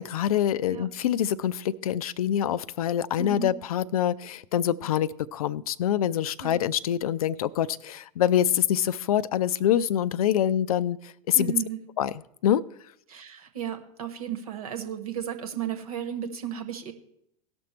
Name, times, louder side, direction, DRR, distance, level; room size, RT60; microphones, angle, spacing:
voice 1, 0.0-11.5 12.0-12.1 12.4-12.6, left 10 dB, 70° left, 0.4 m, -25 dB
voice 2, 3.2-3.5 6.4-6.5 11.3-11.8 13.1-16.9, right 9 dB, 70° right, 1.2 m, -34 dB
17.0 x 6.1 x 4.3 m
figure-of-eight pair, 85°, 20 cm